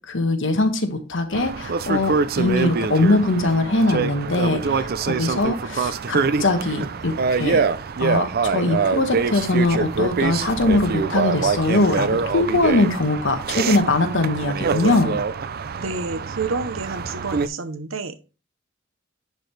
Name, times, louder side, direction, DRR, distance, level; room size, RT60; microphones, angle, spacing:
voice 1, 0.1-7.6 8.0-15.2, left 2 dB, 65° left, 6 dB, 1.3 m, -21 dB
sound 1, 1.3-17.5, right 5 dB, 50° right, 0.5 m, -25 dB
voice 2, 15.8-18.1, right 4 dB, 90° right, 10 dB, 0.9 m, -29 dB
10.5 x 4.6 x 3.3 m, 0.32 s
head